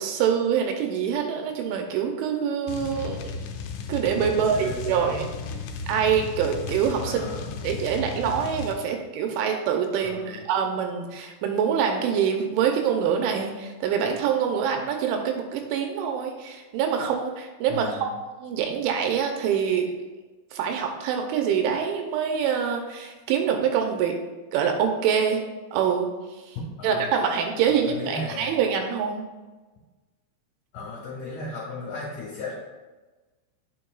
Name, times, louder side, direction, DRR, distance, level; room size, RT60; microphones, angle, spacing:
voice 1, 0.0-3.4 3.9-5.3 5.9-18.1 18.4-19.9 20.5-24.2 24.5-25.4 25.7-26.1 26.5-26.6 26.8-29.2, right 7 dB, 85° right, 3 dB, 3.0 m, -25 dB
sound 1, 2.7-8.8, left 4 dB, 85° left, 3.0 m, -35 dB
voice 2, 4.3-5.3 7.0-7.6 8.2-8.6 10.0-10.4 17.7-18.1 26.8-27.1 27.7-28.6 30.7-32.5, left 2 dB, 60° left, -5 dB, 2.2 m, -36 dB
9.2 x 7.1 x 2.3 m, 1.2 s
omnidirectional pair, 5.5 m